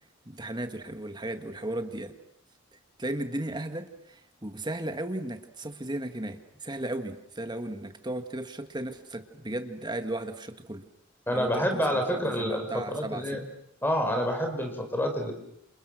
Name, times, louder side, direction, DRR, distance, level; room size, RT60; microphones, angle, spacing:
voice 1, 0.2-2.1 2.7-10.8 11.3-13.4, right 1 dB, 20° right, 8 dB, 1.7 m, -35 dB
voice 2, 11.3-13.4 13.8-15.3, equal, 10° left, 5 dB, 4.8 m, -28 dB
29.0 x 28.0 x 6.4 m, 0.76 s
head